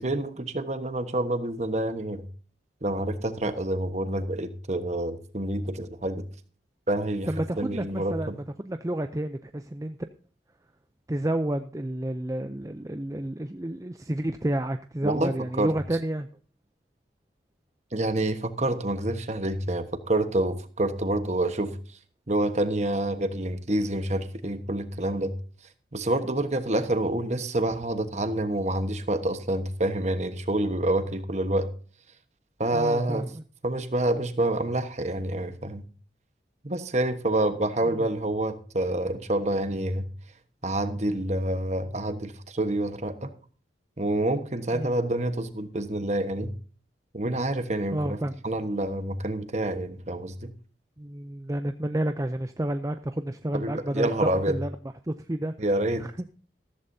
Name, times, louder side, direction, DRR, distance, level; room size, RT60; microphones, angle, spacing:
voice 1, 0.0-2.2 2.8-6.2 6.9-7.3 7.6-8.4 15.0-15.7 17.9-21.7 22.3-25.3 25.9-31.7 32.6-33.3 33.6-35.8 36.6-40.1 40.6-43.3 44.0-46.5 47.1-48.2 48.4-50.5 53.5-54.6 55.6-56.1, right 1 dB, 35° right, 9 dB, 1.3 m, -27 dB
voice 2, 7.3-10.0 11.1-16.3 32.7-33.4 37.9-38.1 44.7-45.0 47.9-48.4 51.0-54.7 55.0-55.5 56.0-56.1, right 1 dB, 15° right, 8 dB, 0.5 m, -30 dB
14.5 x 14.5 x 2.8 m, 0.41 s
head